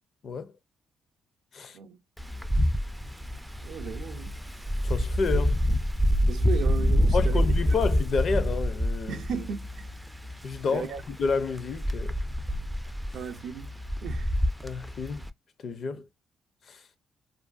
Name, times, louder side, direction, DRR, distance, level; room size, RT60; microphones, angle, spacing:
Wind, 2.2-15.3, equal, 5° right, 0.3 m, -27 dB
voice 1, 3.6-4.3 6.3-7.5 9.1-9.9 10.7-11.0 13.1-13.7 14.0-14.3 15.9-16.0, right 7 dB, 70° right, 0.5 m, -36 dB
voice 2, 4.8-5.6 7.1-9.2 10.4-12.1 14.6-15.2 15.6-16.1 16.7-16.8, left 5 dB, 55° left, 0.5 m, -30 dB
2.5 x 2.2 x 2.4 m
cardioid pair, 90°, 0 cm